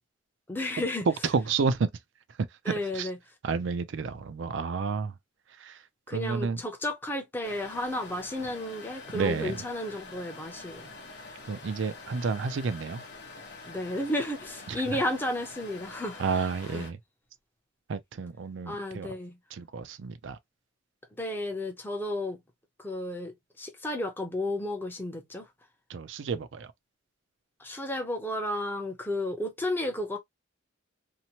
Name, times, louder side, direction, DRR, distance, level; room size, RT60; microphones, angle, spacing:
voice 1, 0.5-1.0 2.7-3.2 6.1-10.9 13.7-16.2 16.7-16.8 18.7-19.3 21.2-22.4 22.8-25.4 27.6-30.2, left 1 dB, 10° left, 0.6 m, -32 dB
voice 2, 1.1-1.9 2.6-3.1 3.4-5.1 5.6-5.8 6.1-6.6 9.1-9.6 11.5-13.0 14.7-15.0 16.2-17.0 17.9-19.1 19.5-20.4 25.9-26.7, right 5 dB, 65° right, 0.4 m, -30 dB
sound 1, 7.4-16.9, left 3 dB, 55° left, 0.9 m, -46 dB
2.8 x 2.1 x 2.8 m
head